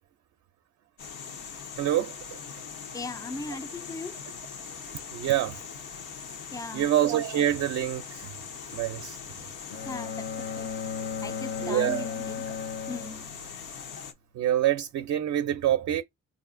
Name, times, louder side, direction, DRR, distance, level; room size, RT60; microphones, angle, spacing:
sound 1, 1.0-14.1, left 6 dB, 85° left, 0.9 m, -41 dB
voice 1, 1.8-2.4 3.5-3.6 5.1-5.6 6.7-8.4 8.7-9.2 11.6-12.1 14.3-16.0, right 12 dB, 60° right, 0.5 m, -26 dB
voice 2, 2.9-4.2 6.5-6.9 9.9-10.7 11.2-12.6 12.9-13.3, left 3 dB, 10° left, 0.3 m, -38 dB
Bowed string instrument, 9.7-13.8, left 6 dB, 50° left, 0.7 m, -35 dB
4.8 x 2.5 x 2.5 m
cardioid pair, 90°, 30 cm